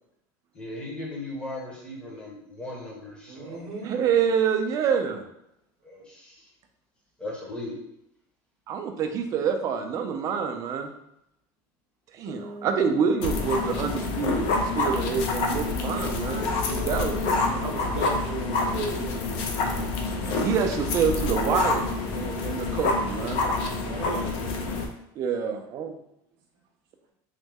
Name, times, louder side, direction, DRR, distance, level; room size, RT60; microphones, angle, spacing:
voice 1, 0.5-3.9 5.8-6.5 7.2-7.7, left 1 dB, 10° left, -3 dB, 0.7 m, -38 dB
voice 2, 3.3-4.0 17.5-19.2 23.8-24.5, right 3 dB, 60° right, 1 dB, 0.7 m, -36 dB
voice 3, 3.8-5.2 8.7-10.9 12.1-17.2 20.2-21.9 22.1-23.5 25.2-26.0, right 6 dB, 35° right, 5 dB, 0.3 m, -27 dB
sound 1, 12.2-14.5 16.2-17.3, left 2 dB, 45° left, 0.9 m, -39 dB
sound 2, 13.2-24.9, left 3 dB, 60° left, 0.5 m, -27 dB
3.1 x 2.1 x 3.4 m, 0.79 s
cardioid pair, 160°, 9 cm